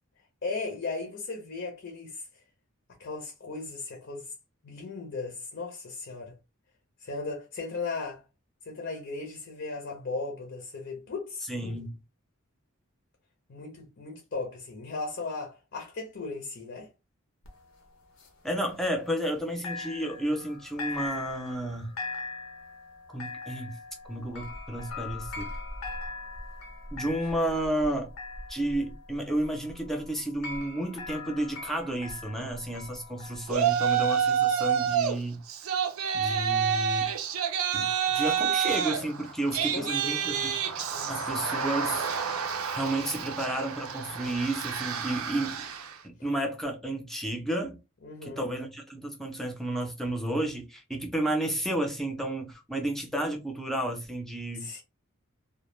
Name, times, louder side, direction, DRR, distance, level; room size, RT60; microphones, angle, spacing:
voice 1, 0.4-2.3 3.0-4.3 4.6-6.3 7.0-8.2 8.6-11.8 13.5-16.9 39.7-40.4 40.8-41.4 48.0-48.5 54.6-54.8, left 3 dB, 55° left, 0.6 m, -37 dB
voice 2, 11.5-12.0 18.4-21.9 23.1-23.8 24.0-25.5 26.9-28.1 28.5-35.4 36.1-37.1 37.7-40.6 41.1-42.1 42.7-45.6 46.0-47.8 48.2-54.7, right 1 dB, ahead, 0.4 m, -32 dB
sound 1, 17.5-19.4 19.6-33.5, left 3 dB, 90° left, 0.7 m, -41 dB
Yell, 33.5-35.2 35.5-45.9, right 8 dB, 75° right, 0.4 m, -28 dB
2.2 x 2.1 x 3.0 m
head